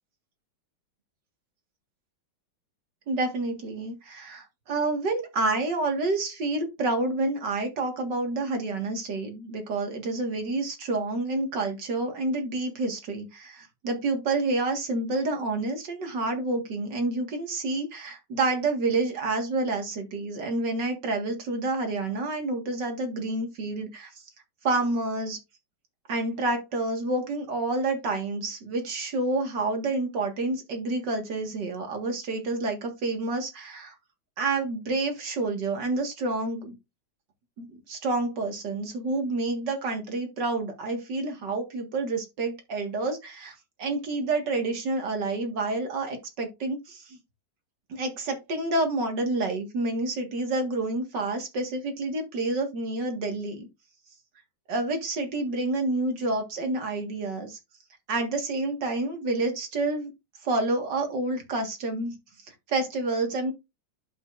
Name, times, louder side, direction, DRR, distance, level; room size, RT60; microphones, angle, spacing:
voice 1, 3.1-24.1 24.6-25.4 26.1-34.0 34.4-36.8 37.6-47.2 47.9-53.7 54.7-57.6 58.1-60.1 60.4-62.2 62.5-63.5, right 2 dB, 55° right, 2.3 m, -29 dB
11.5 x 5.5 x 2.5 m
omnidirectional pair, 2.3 m